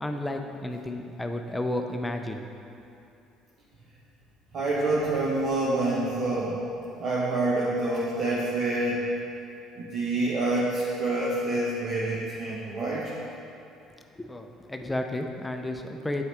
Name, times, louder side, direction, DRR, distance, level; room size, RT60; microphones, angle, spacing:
voice 1, 0.0-2.5 14.2-16.2, left 1 dB, 10° left, 4 dB, 0.5 m, -32 dB
voice 2, 4.5-6.6 7.0-9.1 9.8-13.1, right 2 dB, 55° right, -6 dB, 1.0 m, -27 dB
8.0 x 4.8 x 3.4 m, 2.7 s
supercardioid pair, 95°, 0 cm